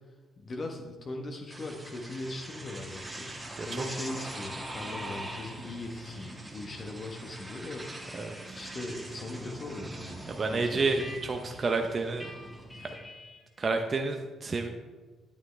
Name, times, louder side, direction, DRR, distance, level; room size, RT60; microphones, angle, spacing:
voice 1, 0.4-7.9 8.5-10.8, left 2 dB, 45° left, 2 dB, 1.1 m, -40 dB
sound 1, 1.5-13.0, right 1 dB, 15° right, 1.7 m, -42 dB
sound 2, 4.6-7.1 7.4-13.6, left 1 dB, 20° left, 2.0 m, -51 dB
voice 2, 8.1-8.6 10.3-12.3 12.8-12.9 13.6-14.7, right 3 dB, 40° right, 4 dB, 0.7 m, -30 dB
9.2 x 8.7 x 3.3 m, 1.3 s
hypercardioid pair, 50°, 0 cm